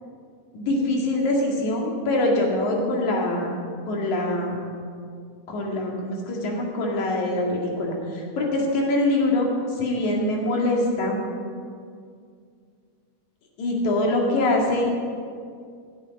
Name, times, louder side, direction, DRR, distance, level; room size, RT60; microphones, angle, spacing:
voice 1, 0.6-3.5 3.9-4.6 5.5-11.2 13.6-14.9, left 1 dB, 80° left, -1 dB, 3.7 m, -24 dB
16.0 x 13.0 x 5.3 m, 2.2 s
omnidirectional pair, 3.3 m